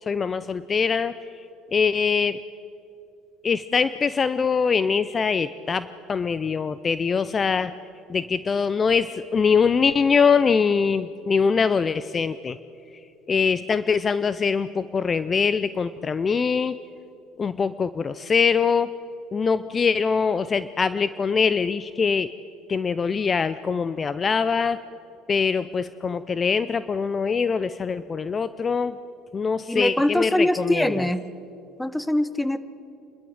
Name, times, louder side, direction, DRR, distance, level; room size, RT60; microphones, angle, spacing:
voice 1, 0.0-1.5 1.7-2.4 3.4-7.7 8.1-12.6 13.3-16.8 17.4-18.9 19.3-22.3 22.7-24.8 25.3-29.0 29.3-31.1, left 5 dB, 30° left, 14 dB, 0.5 m, -23 dB
voice 2, 29.7-31.2 31.8-32.6, left 1 dB, 5° left, 14 dB, 1.1 m, -23 dB
28.0 x 12.5 x 7.9 m, 2.8 s
supercardioid pair, 85°, 0 cm